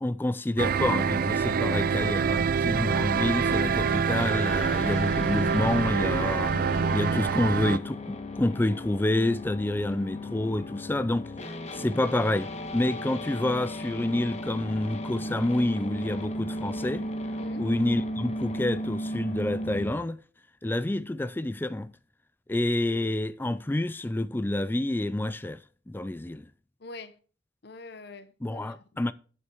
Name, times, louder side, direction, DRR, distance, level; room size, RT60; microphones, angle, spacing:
voice 1, 0.0-6.6 6.9-11.3 11.7-17.1 17.6-20.2 20.6-21.9 22.5-25.6 25.9-26.5 28.4-29.1, left 1 dB, 10° left, 0.4 m, -28 dB
sound 1, 0.6-7.8, right 6 dB, 50° right, 0.5 m, -26 dB
sound 2, 3.9-19.9, left 1 dB, 40° left, 1.3 m, -36 dB
voice 2, 17.4-17.7 26.8-27.2 27.6-29.0, left 3 dB, 65° left, 0.9 m, -45 dB
8.7 x 6.5 x 6.2 m
head